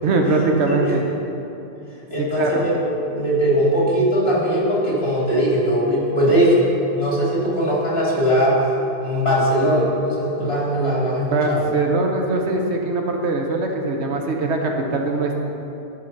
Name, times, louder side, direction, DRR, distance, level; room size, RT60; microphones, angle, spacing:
voice 1, 0.0-1.0 2.2-2.6 11.3-15.4, right 3 dB, 85° right, 2 dB, 1.2 m, -21 dB
voice 2, 2.1-2.8 3.1-6.6 7.0-8.6 9.0-11.7, equal, 65° left, -6 dB, 2.8 m, -20 dB
12.0 x 4.9 x 5.9 m, 2.8 s
omnidirectional pair, 1.1 m